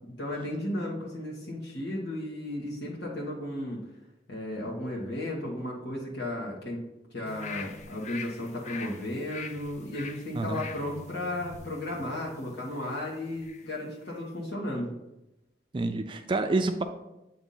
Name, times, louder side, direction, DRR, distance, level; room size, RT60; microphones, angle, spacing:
voice 1, 0.2-3.8 4.3-6.8 7.1-14.9, left 1 dB, 80° left, -4 dB, 1.3 m, -34 dB
sound 1, 7.2-13.7 14.1-14.2, left 5 dB, 40° left, 0.4 m, -44 dB
voice 2, 15.7-16.8, right 3 dB, 30° right, 7 dB, 0.3 m, -28 dB
7.9 x 2.6 x 5.5 m, 0.93 s
head